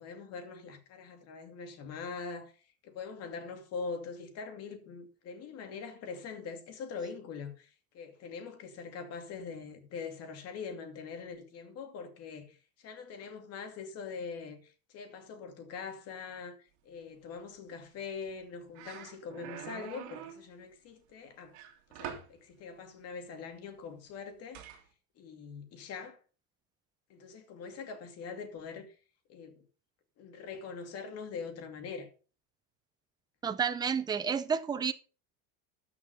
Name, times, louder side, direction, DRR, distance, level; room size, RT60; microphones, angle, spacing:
voice 1, 0.0-21.6 21.9-24.6 25.2-26.2 27.1-29.0 29.3-29.6 30.2-32.1, left 5 dB, 40° left, 2.5 m, -43 dB
sound 1, 18.3-18.4 18.7-20.4 21.5-22.3 24.5-24.8, right 9 dB, 65° right, 2.4 m, -44 dB
voice 2, 33.4-34.9, right 6 dB, 10° right, 0.6 m, -30 dB
13.5 x 5.9 x 5.5 m
cardioid pair, 160°, 39 cm